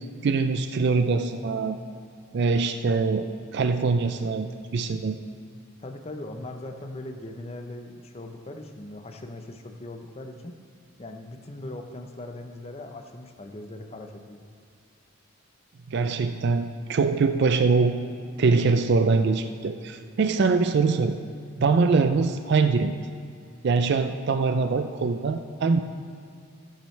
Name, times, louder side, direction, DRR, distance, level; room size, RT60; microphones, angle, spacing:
voice 1, 0.2-1.8 2.3-3.3 3.5-4.5 4.7-5.2 15.9-18.0 18.4-21.2 21.6-22.9 23.6-25.8, right 4 dB, 55° right, 7 dB, 0.4 m, -23 dB
voice 2, 5.8-10.6 11.0-14.4 21.9-22.1, left 1 dB, 30° left, 5 dB, 0.7 m, -40 dB
15.0 x 8.6 x 3.3 m, 2.3 s
head